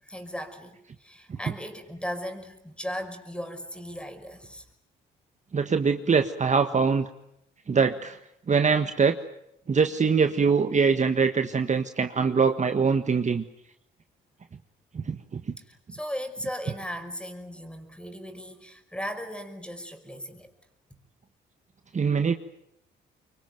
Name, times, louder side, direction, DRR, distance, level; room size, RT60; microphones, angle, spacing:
voice 1, 0.0-4.6 15.7-20.5, equal, 5° left, 7 dB, 5.4 m, -37 dB
voice 2, 5.5-7.1 7.7-8.2 8.5-9.2 9.7-13.4 15.1-15.4 21.9-22.3, right 5 dB, 35° right, 8 dB, 1.5 m, -23 dB
25.0 x 23.5 x 9.4 m, 0.79 s
supercardioid pair, 70°, 20 cm